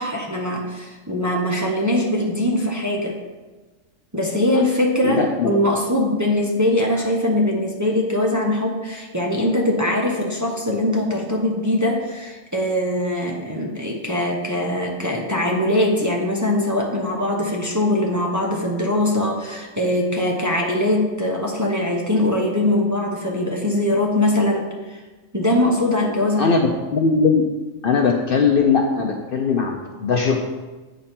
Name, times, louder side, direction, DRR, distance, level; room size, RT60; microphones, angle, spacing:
voice 1, 0.0-3.1 4.1-25.0 25.3-26.5, left 1 dB, 15° right, -1 dB, 0.8 m, -22 dB
voice 2, 5.0-5.5 26.4-27.4 27.8-30.4, left 5 dB, 55° left, 2 dB, 0.7 m, -19 dB
8.7 x 5.2 x 4.4 m, 1.2 s
omnidirectional pair, 1.3 m